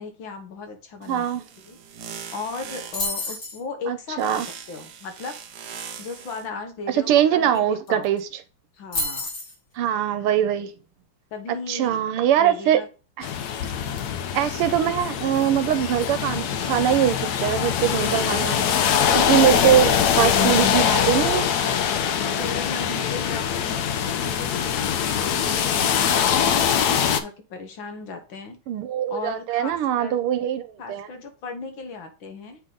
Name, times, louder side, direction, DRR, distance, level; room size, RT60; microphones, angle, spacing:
voice 1, 0.0-1.3 1.6-1.8 2.3-5.4 6.0-8.1 8.8-9.3 11.3-12.0 12.4-12.9 22.3-28.6 29.1-30.2 30.8-32.6, left 4 dB, 65° left, 1.8 m, -36 dB
sound 1, 1.0-3.3 4.2-6.5, right 7 dB, 60° right, 1.3 m, -40 dB
voice 2, 1.1-1.4 3.9-4.5 6.9-8.2 9.8-10.7 11.7-12.8 13.2-13.3 14.3-18.6 19.1-19.9 20.2-21.5 28.7-31.1, right 11 dB, 80° right, 1.6 m, -22 dB
sound 2, 2.9-3.6 7.5-7.6 7.9-8.2 8.9-9.5, left 2 dB, 40° left, 2.2 m, -28 dB
sound 3, 13.2-27.2, left 8 dB, 85° left, 0.8 m, -23 dB
7.9 x 3.7 x 3.8 m
omnidirectional pair, 2.4 m